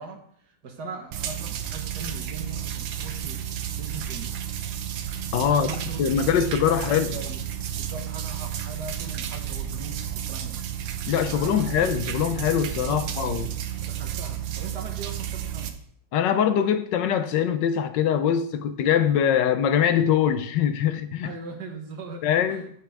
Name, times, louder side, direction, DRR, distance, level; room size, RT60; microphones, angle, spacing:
voice 1, 0.0-3.4 3.7-4.5 5.5-6.0 6.7-7.4 7.7-10.6 11.3-11.6 12.9-13.4 13.8-15.7 21.2-22.7, right 4 dB, 60° right, 1.8 m, -39 dB
sound 1, 1.1-15.7, right 10 dB, 80° right, 1.5 m, -32 dB
voice 2, 5.3-5.7 6.0-7.1 11.1-13.5 16.1-21.3 22.2-22.6, left 9 dB, 75° left, 1.3 m, -23 dB
9.2 x 7.5 x 3.4 m
omnidirectional pair, 2.0 m